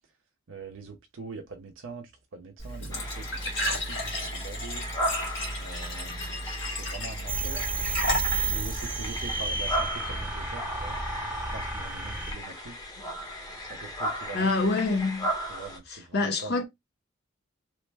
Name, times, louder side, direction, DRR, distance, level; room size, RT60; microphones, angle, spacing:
voice 1, 0.5-3.5 3.8-4.9 5.6-6.4 6.7-7.6 8.5-11.0 11.5-12.8 13.7-14.5 15.5-16.6, right 4 dB, 80° right, 0.6 m, -43 dB
Glass / Trickle dribble / Fill (with liquid), 2.6-9.3, left 1 dB, 75° left, 1.5 m, -33 dB
sound 1, 2.9-15.8, equal, 20° left, 0.9 m, -36 dB
sound 2, 7.3-12.3, right 3 dB, 10° right, 0.6 m, -31 dB
voice 2, 14.3-15.3 15.9-16.6, left 3 dB, 55° left, 0.7 m, -27 dB
3.2 x 2.1 x 3.2 m
head